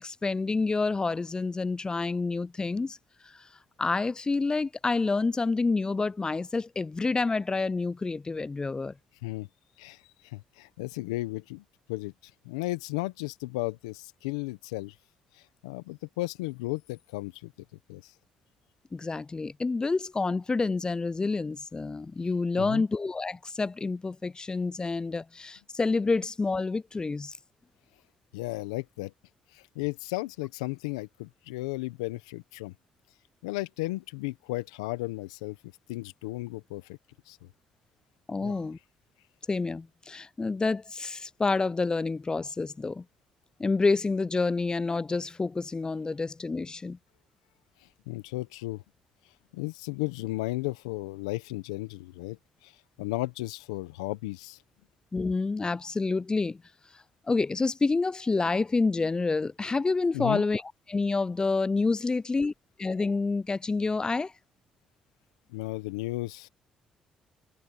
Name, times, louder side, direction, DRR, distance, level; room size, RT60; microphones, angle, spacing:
voice 1, 0.0-3.0 3.2-3.5 3.8-8.9 18.9-27.4 38.3-38.8 39.5-43.1 43.6-47.0 55.1-56.6 57.3-62.5 62.8-64.3, left 3 dB, 25° left, 0.4 m, -28 dB
voice 2, 9.8-11.6 11.9-14.9 15.3-17.5 17.9-18.1 22.6-22.8 28.3-29.1 29.5-32.7 33.4-35.6 35.9-37.0 37.3-37.5 38.4-38.6 48.1-48.8 49.5-52.7 53.0-54.6 60.1-60.4 65.5-66.5, left 20 dB, 85° left, 1.1 m, -34 dB
hypercardioid pair, 50°, 3 cm